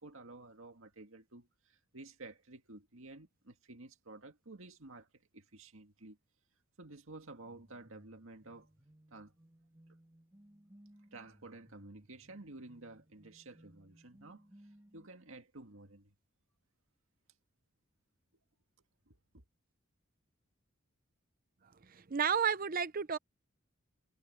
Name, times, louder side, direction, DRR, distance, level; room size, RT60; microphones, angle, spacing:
voice 1, 0.0-5.1 5.3-6.2 6.8-8.7 9.1-9.3 11.1-16.1 19.1-19.4, right 2 dB, 75° right, 2.0 m, -52 dB
sound 1, 7.5-15.1, equal, 15° right, 3.2 m, -62 dB
voice 2, 21.9-23.2, right 7 dB, 40° right, 0.7 m, -32 dB
head